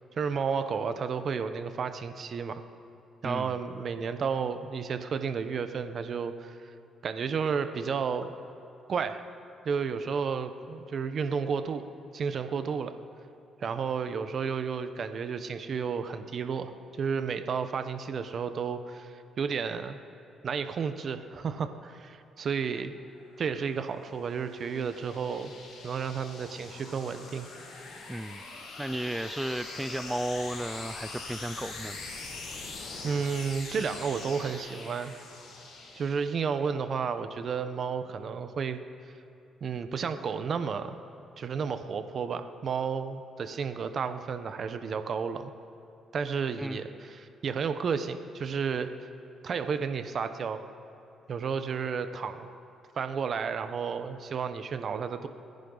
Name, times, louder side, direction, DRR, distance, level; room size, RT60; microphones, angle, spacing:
voice 1, 0.2-2.6 3.2-6.6 7.0-8.3 8.9-9.2 9.6-11.8 12.1-12.9 13.6-20.0 20.4-23.0 23.4-25.5 25.8-27.5 33.0-35.1 36.0-39.1 39.6-41.0 41.4-45.5 46.1-48.9 49.4-50.6 51.3-52.5 53.0-55.3, right 6 dB, 55° right, 9 dB, 1.0 m, -32 dB
sound 1, 23.1-36.5, left 3 dB, 75° left, 4.2 m, -43 dB
voice 2, 28.1-28.4 28.8-32.0 46.6-46.8, right 1 dB, 5° right, 9 dB, 0.5 m, -34 dB
28.0 x 10.5 x 4.0 m, 2.7 s
cardioid pair, 90°, 0 cm